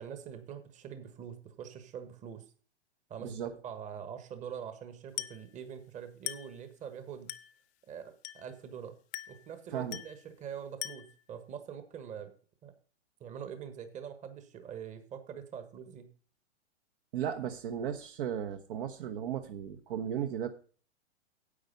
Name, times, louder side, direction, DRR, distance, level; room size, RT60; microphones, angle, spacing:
voice 1, 0.0-2.4 3.1-3.4 3.6-7.3 7.9-9.0 9.3-12.3 12.6-12.7 13.2-16.1, right 8 dB, 20° right, 10 dB, 1.4 m, -44 dB
voice 2, 3.2-3.5 9.7-10.0 17.1-20.5, right 9 dB, 50° right, 6 dB, 1.2 m, -35 dB
Glass, 5.2-5.5 6.3-6.6 7.3-7.6 8.2-8.6 9.1-9.5 9.9-10.2 10.8-11.2, left 15 dB, 20° left, 0.6 m, -41 dB
10.0 x 8.2 x 5.4 m, 0.42 s
hypercardioid pair, 120°, 34 cm